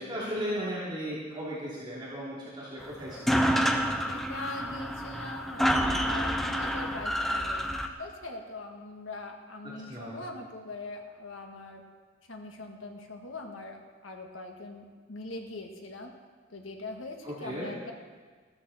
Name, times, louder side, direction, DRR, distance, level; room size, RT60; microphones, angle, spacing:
voice 1, 0.0-3.4 9.9-10.2 17.2-17.7, equal, 25° right, -8 dB, 3.1 m, -36 dB
sound 1, 2.8-2.9 3.1-7.9, equal, ahead, 0.7 m, -28 dB
voice 2, 4.0-11.8 12.3-16.1 16.5-17.9, left 2 dB, 80° left, 3 dB, 1.7 m, -42 dB
15.0 x 13.5 x 4.3 m, 1.5 s
head